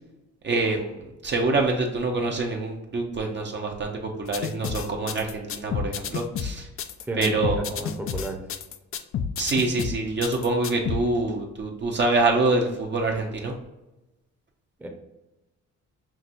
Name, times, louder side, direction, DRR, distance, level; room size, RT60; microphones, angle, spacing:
voice 1, 0.4-0.9 1.2-6.7 7.2-7.8 9.4-13.5, right 3 dB, 35° right, 1 dB, 0.7 m, -25 dB
sound 1, 4.3-11.0, left 8 dB, 50° left, 0.4 m, -30 dB
voice 2, 7.1-8.4 14.8-14.9, right 2 dB, 5° right, 1 dB, 0.8 m, -33 dB
5.9 x 2.6 x 2.6 m, 0.99 s
cardioid pair, 90°, 30 cm